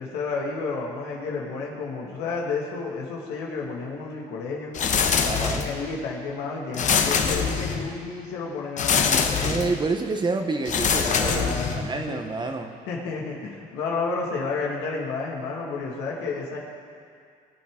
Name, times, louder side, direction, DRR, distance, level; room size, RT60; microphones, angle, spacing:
voice 1, 0.0-4.7 5.2-9.7 11.0-11.8 12.1-12.3 12.9-16.6, left 4 dB, 90° left, -2 dB, 1.9 m, -31 dB
sound 1, 4.7-5.9 6.7-8.0 8.8-9.8 10.6-12.0, left 6 dB, 45° left, 1.0 m, -24 dB
voice 2, 5.2-5.6 9.4-11.5 11.8-12.7, right 3 dB, 25° right, 5 dB, 0.9 m, -28 dB
20.5 x 8.3 x 3.7 m, 2.3 s
cardioid pair, 110°, 17 cm